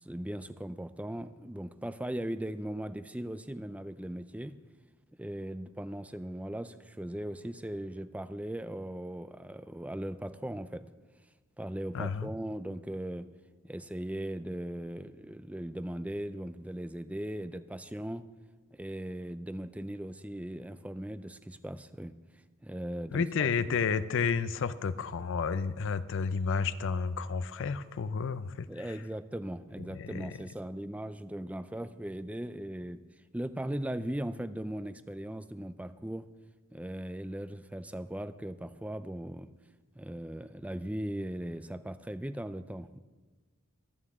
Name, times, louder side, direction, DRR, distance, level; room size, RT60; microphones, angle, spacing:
voice 1, 0.0-4.5 5.2-10.8 11.6-13.3 13.6-18.3 18.7-22.1 22.6-23.8 28.7-33.0 33.3-36.3 36.7-39.5 40.0-43.0, right 1 dB, 5° right, 12 dB, 0.4 m, -38 dB
voice 2, 11.9-12.3 23.1-28.9 29.8-30.4, left 5 dB, 60° left, 14 dB, 0.5 m, -31 dB
24.0 x 8.9 x 3.6 m, 1.3 s
head